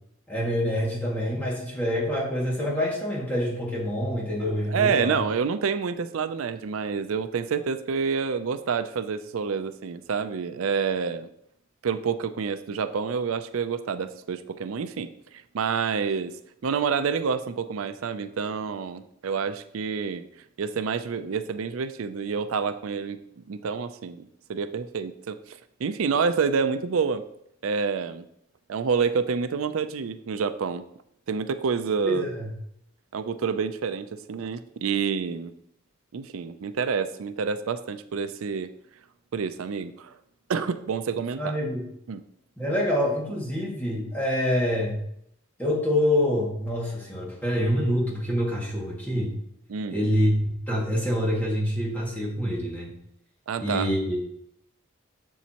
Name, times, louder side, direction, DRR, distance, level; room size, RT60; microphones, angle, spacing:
voice 1, 0.3-5.2 32.0-32.5 41.4-41.8 42.6-44.9 45.6-49.3 49.9-52.9 53.6-54.2, equal, 10° left, -4 dB, 2.0 m, -26 dB
voice 2, 4.7-11.3 11.8-15.1 15.5-16.3 16.6-20.2 20.6-23.2 23.5-27.2 27.6-28.3 28.7-30.8 31.3-32.2 33.1-35.5 36.1-38.7 39.3-40.1 40.5-41.6 42.1-42.2 49.7-50.0 53.5-53.9, right 5 dB, 85° right, 11 dB, 0.4 m, -28 dB
7.1 x 7.1 x 2.9 m, 0.72 s
head